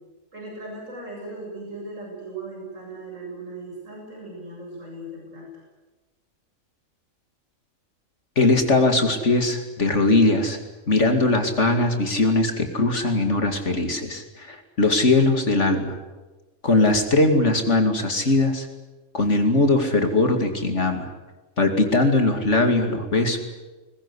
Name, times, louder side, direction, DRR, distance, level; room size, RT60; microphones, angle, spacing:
voice 1, 0.3-5.5, right 2 dB, 65° right, -2 dB, 8.1 m, -38 dB
voice 2, 8.4-10.6 10.9-15.9 16.6-18.7 19.1-21.1 21.6-23.4, left 2 dB, 55° left, 6 dB, 2.7 m, -20 dB
21.5 x 20.5 x 9.9 m, 1.2 s
omnidirectional pair, 1.4 m